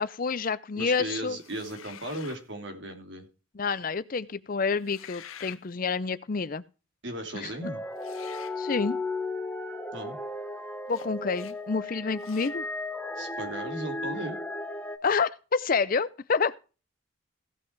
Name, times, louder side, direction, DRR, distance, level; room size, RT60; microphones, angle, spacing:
voice 1, 0.0-1.4 3.6-6.6 7.4-7.5 8.6-9.0 10.9-12.7 15.0-16.6, left 5 dB, 40° left, 0.5 m, -28 dB
voice 2, 0.7-3.2 7.0-7.8 9.9-10.2 13.2-14.4, right 1 dB, 60° right, 2.9 m, -36 dB
sound 1, 1.4-2.5 4.7-5.6 8.0-8.6 10.9-11.1 11.3-11.6 12.2-12.6, left 9 dB, 85° left, 0.8 m, -47 dB
sound 2, 7.6-15.0, left 2 dB, 10° left, 1.0 m, -35 dB
16.5 x 5.9 x 4.5 m
head